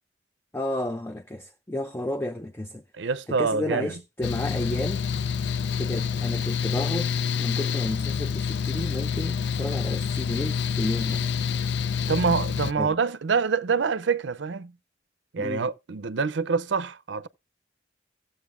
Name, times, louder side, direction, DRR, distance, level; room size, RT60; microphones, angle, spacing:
voice 1, 0.5-2.8 3.3-5.1 5.8-11.3 12.8-13.0 15.4-15.6, left 1 dB, 10° left, 0.4 m, -32 dB
voice 2, 3.0-3.9 12.1-14.7 15.3-17.3, right 5 dB, 75° right, 0.5 m, -26 dB
Mechanical fan, 4.2-12.7, left 6 dB, 65° left, 0.4 m, -27 dB
14.5 x 7.7 x 2.5 m
head